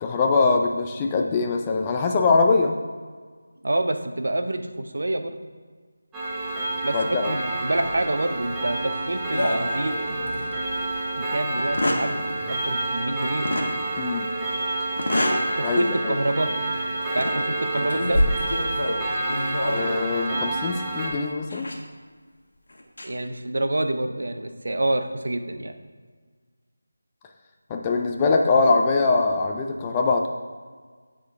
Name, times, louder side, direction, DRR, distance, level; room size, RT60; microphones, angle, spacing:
voice 1, 0.0-2.8 6.9-7.3 14.0-14.3 15.6-16.2 19.7-21.7 27.7-30.3, left 4 dB, 15° left, 3 dB, 0.4 m, -22 dB
voice 2, 3.6-5.4 6.8-10.0 11.2-13.5 15.6-16.5 17.1-18.3 23.0-25.7, right 1 dB, 70° right, 7 dB, 0.6 m, -27 dB
Clock, 6.1-21.1, right 2 dB, 10° right, 0.9 m, -29 dB
sound 1, 9.3-10.4 10.8-10.9 11.6-12.1 13.4-13.7 14.9-15.5 15.9-16.1 17.0-17.4 17.7-20.1 21.5-21.7 22.7-23.0, left 1 dB, 75° left, 1.1 m, -26 dB
8.8 x 3.7 x 3.5 m, 1.5 s
figure-of-eight pair, 170°, 0 cm